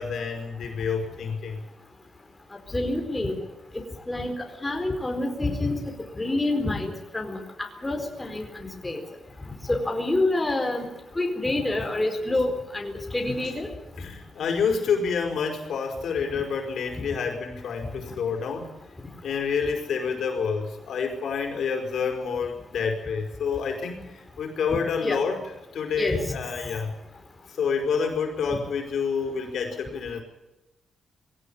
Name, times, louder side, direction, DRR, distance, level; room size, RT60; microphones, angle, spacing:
voice 1, 0.0-1.6 14.0-18.7 19.2-25.4 25.7-26.9 27.5-30.2, left 6 dB, 70° left, 3 dB, 5.1 m, -28 dB
voice 2, 2.7-3.3 4.1-4.3 4.6-5.8 6.2-7.4 7.8-9.0 9.7-10.9 11.2-13.7 25.0-25.2 26.0-26.2, left 2 dB, 15° left, 3 dB, 4.3 m, -27 dB
21.5 x 17.5 x 8.7 m, 0.98 s
cardioid pair, 120°, 0 cm